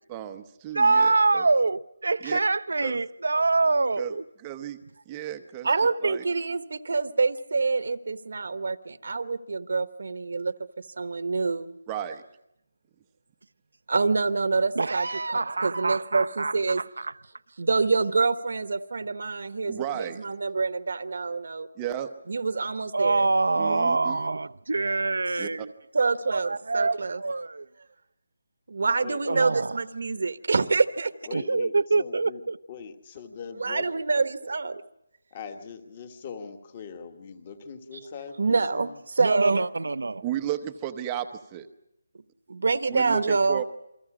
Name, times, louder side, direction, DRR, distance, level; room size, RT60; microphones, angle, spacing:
voice 1, 0.1-1.5 2.2-2.4 2.8-3.0 4.0-4.1 4.4-4.8 5.1-5.7 6.0-6.2 11.9-12.2 19.7-20.2 21.8-22.1 23.6-24.2 25.4-25.7 40.2-41.7 42.9-43.6, right 11 dB, 10° right, 0.8 m, -34 dB
voice 2, 0.7-4.2 14.8-17.1 22.9-25.7 26.3-27.7 29.3-29.8 31.3-32.6 39.2-40.2, right 3 dB, 75° right, 0.8 m, -25 dB
voice 3, 5.6-11.8 13.9-15.1 15.3-16.8 17.6-21.7 22.3-23.3 25.9-27.2 28.7-31.1 33.6-34.8 38.4-39.7 42.5-43.6, right 4 dB, 50° right, 1.1 m, -26 dB
voice 4, 29.0-29.5 31.3-32.4 32.7-33.8 35.3-39.0, left 6 dB, 20° left, 1.4 m, -41 dB
29.0 x 23.5 x 4.9 m
hypercardioid pair, 180°, 0 cm